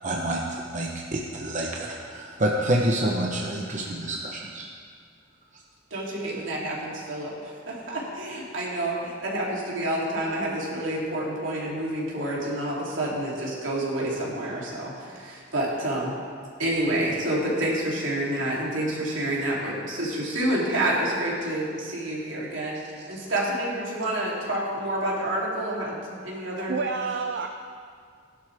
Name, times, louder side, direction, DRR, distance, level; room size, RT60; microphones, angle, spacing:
voice 1, 0.0-4.7, right 1 dB, 40° right, -2 dB, 1.0 m, -28 dB
voice 2, 5.9-16.1 16.6-22.8 23.1-26.0 26.2-26.8, right 1 dB, 75° right, -5 dB, 3.2 m, -28 dB
voice 3, 22.7-23.2 26.7-27.5, right 5 dB, 60° right, 5 dB, 0.5 m, -30 dB
16.5 x 11.5 x 3.5 m, 2.1 s
head